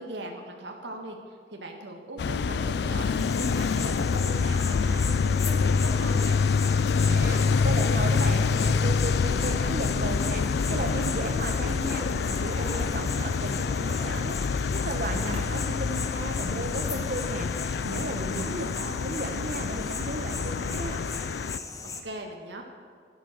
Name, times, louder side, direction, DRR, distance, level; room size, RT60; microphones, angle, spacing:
voice 1, 0.0-6.4 18.4-19.0 22.0-22.6, right 1 dB, 80° right, 2 dB, 1.7 m, -39 dB
sound 1, 2.2-21.6, left 5 dB, 60° left, 0.4 m, -26 dB
sound 2, 3.2-22.0, left 4 dB, 20° left, 0.9 m, -38 dB
voice 2, 7.0-14.4 14.7-18.6 19.0-21.0, right 2 dB, 50° right, 6 dB, 1.4 m, -35 dB
Zipper (clothing), 8.2-15.8 16.3-16.4, right 1 dB, 35° right, 2.3 m, -45 dB
12.0 x 11.5 x 6.7 m, 2.2 s
head